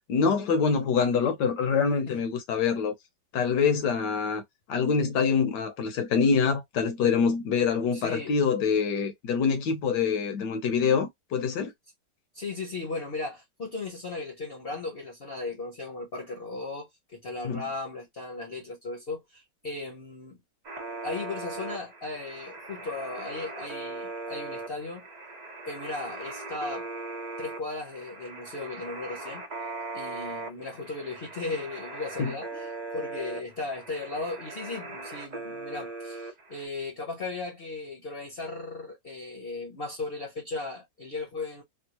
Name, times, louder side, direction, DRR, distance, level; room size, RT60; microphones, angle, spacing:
voice 1, 0.1-2.9 3.3-4.4 4.7-11.7 17.4-17.6 32.2-32.3, left 6 dB, 75° left, 1.4 m, -25 dB
voice 2, 7.9-8.4 12.3-20.4 21.0-25.1 25.6-26.9 27.4-29.4 29.9-41.6, left 3 dB, 40° left, 0.9 m, -36 dB
sound 1, 20.6-36.7, right 3 dB, 40° right, 0.6 m, -39 dB
3.5 x 2.4 x 2.9 m
omnidirectional pair, 1.9 m